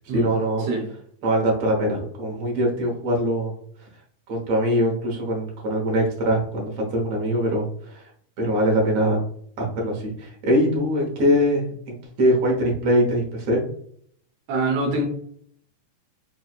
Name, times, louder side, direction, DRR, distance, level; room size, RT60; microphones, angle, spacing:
voice 1, 0.1-0.7 1.2-3.5 4.3-8.0 8.4-9.2 9.6-13.6, equal, 60° right, -1 dB, 1.7 m, -22 dB
voice 2, 14.5-15.0, right 2 dB, 85° right, 0 dB, 1.4 m, -24 dB
6.1 x 2.3 x 2.3 m, 0.62 s
omnidirectional pair, 3.9 m